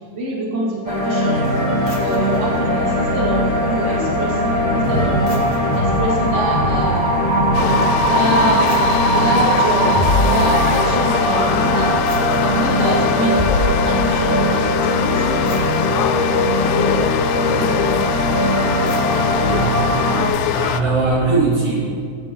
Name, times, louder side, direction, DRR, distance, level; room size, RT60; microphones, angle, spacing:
voice 1, 0.1-1.4 2.0-7.2 8.0-8.7 9.2-9.9 10.2-12.0 12.4-13.5 13.8-15.8, right 1 dB, 25° right, -4 dB, 2.3 m, -25 dB
sound 1, 0.8-20.3, equal, 50° left, 0.4 m, -19 dB
sound 2, 1.3-21.2, equal, 65° right, 1.7 m, -31 dB
sound 3, 7.5-20.8, left 10 dB, 80° left, 1.8 m, -23 dB
voice 2, 19.2-19.7 20.4-21.9, right 3 dB, 85° right, -7 dB, 5.2 m, -20 dB
16.0 x 8.8 x 3.9 m, 2.3 s
omnidirectional pair, 3.8 m